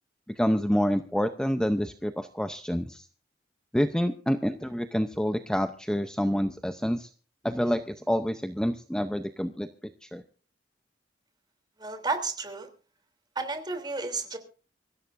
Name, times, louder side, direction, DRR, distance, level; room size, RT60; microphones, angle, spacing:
voice 1, 0.4-3.1 3.7-7.1 7.4-9.7 10.0-10.2, equal, 5° left, 8 dB, 0.7 m, -27 dB
voice 2, 11.8-12.7 13.3-14.4, right 3 dB, 25° right, 6 dB, 3.2 m, -32 dB
25.0 x 15.0 x 2.6 m, 0.38 s
head